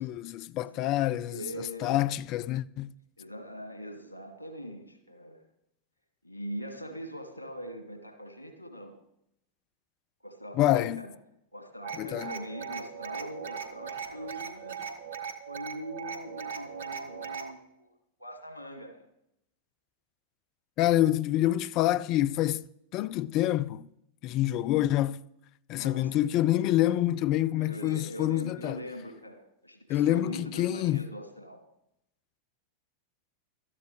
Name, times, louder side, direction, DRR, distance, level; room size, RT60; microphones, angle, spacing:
voice 1, 0.0-1.5 1.8-2.9 10.6-11.0 12.0-12.4 20.8-23.9 24.2-25.2 25.7-28.8 29.9-31.1, left 14 dB, 40° left, 0.4 m, -27 dB
voice 2, 0.6-0.9 1.3-2.1 3.2-5.4 6.2-9.0 10.2-11.1 11.5-14.8 15.5-17.9 18.2-19.0 25.7-26.1 27.5-31.6, equal, 85° right, 2.3 m, -42 dB
sound 1, 11.8-17.5, right 6 dB, 65° right, 1.3 m, -39 dB
18.5 x 13.0 x 3.3 m
figure-of-eight pair, 90°, 0 cm